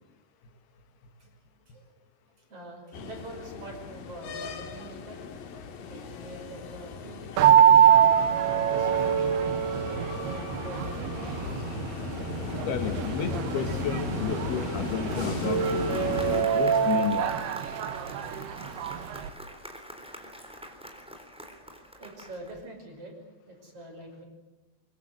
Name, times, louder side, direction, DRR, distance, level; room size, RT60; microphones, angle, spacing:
voice 1, 2.5-5.2 5.9-8.1 8.4-9.2 9.7-11.7 22.0-24.2, right 2 dB, 35° right, 3 dB, 6.4 m, -44 dB
sound 1, 2.9-16.4, left 6 dB, 60° left, 3.4 m, -36 dB
sound 2, 7.4-19.3, right 9 dB, 80° right, 3.2 m, -24 dB
voice 2, 12.5-15.6 16.5-17.4, left 7 dB, 80° left, 7 dB, 3.9 m, -31 dB
Applause, 14.7-22.6, equal, ahead, 3.2 m, -45 dB
24.5 x 23.5 x 7.9 m, 1.0 s
omnidirectional pair, 4.6 m